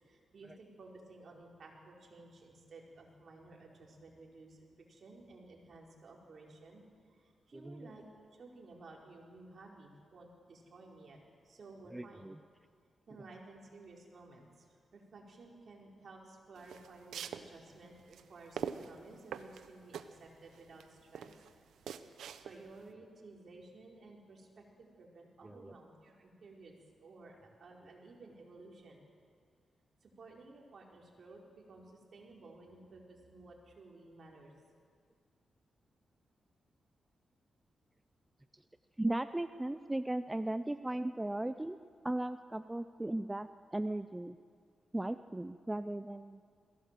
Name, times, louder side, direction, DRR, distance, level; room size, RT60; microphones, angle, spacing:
voice 1, 0.0-8.0 8.3-11.2 11.4-12.3 13.1-21.4 22.4-26.7 27.0-29.0 30.0-34.5, right 3 dB, 60° right, -1 dB, 4.6 m, -55 dB
voice 2, 7.5-7.9 11.9-12.4 25.4-25.7 38.5-38.6 39.0-41.8 42.0-44.4 44.9-46.4, right 1 dB, 15° right, 11 dB, 0.6 m, -37 dB
sound 1, 16.5-22.8, right 8 dB, 90° right, 0.8 m, -44 dB
22.0 x 16.5 x 7.6 m, 2.1 s
cardioid pair, 65°, 0 cm